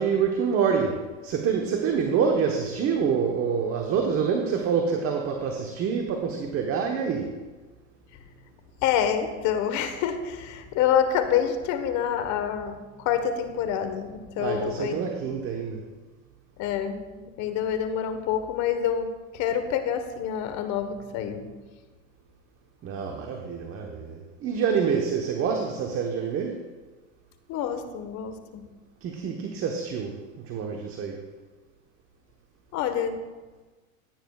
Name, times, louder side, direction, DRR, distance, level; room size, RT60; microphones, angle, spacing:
voice 1, 0.0-7.4 14.4-15.9 22.8-26.6 29.0-31.3, right 6 dB, 35° right, 3 dB, 1.1 m, -27 dB
voice 2, 8.8-15.0 16.6-19.1 19.3-21.5 27.5-28.7 32.7-33.2, left 8 dB, 45° left, 8 dB, 1.3 m, -27 dB
14.5 x 9.2 x 2.4 m, 1.3 s
hypercardioid pair, 110°, 39 cm